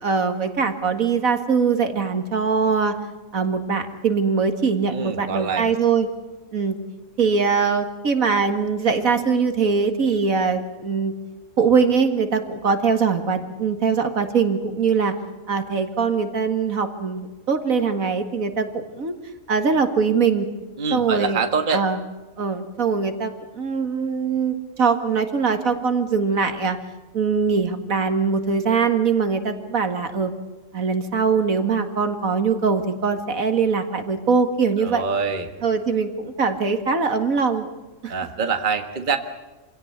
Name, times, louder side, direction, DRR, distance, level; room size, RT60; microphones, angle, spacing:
voice 1, 0.0-2.9 3.3-6.1 6.5-6.8 7.2-11.1 11.6-15.1 15.5-19.1 19.5-20.5 20.9-21.4 21.7-22.0 22.4-26.8 27.1-30.3 30.7-35.0 35.6-37.7 38.0-38.2, right 5 dB, 70° right, 8 dB, 2.3 m, -22 dB
voice 2, 4.9-5.7 20.8-21.8 34.8-35.5 38.1-39.2, right 5 dB, 35° right, 7 dB, 1.5 m, -25 dB
27.0 x 17.0 x 8.3 m, 1.2 s
omnidirectional pair, 1.5 m